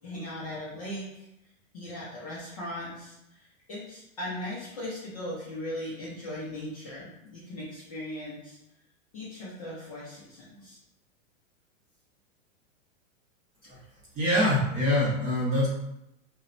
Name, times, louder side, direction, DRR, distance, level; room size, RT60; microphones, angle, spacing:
voice 1, 0.0-1.3 1.7-8.6 9.1-10.8, left 1 dB, 30° left, -8 dB, 0.4 m, -38 dB
voice 2, 14.1-15.7, left 1 dB, 20° right, -6 dB, 0.6 m, -24 dB
2.9 x 2.0 x 2.4 m, 0.86 s
supercardioid pair, 150°, 40 cm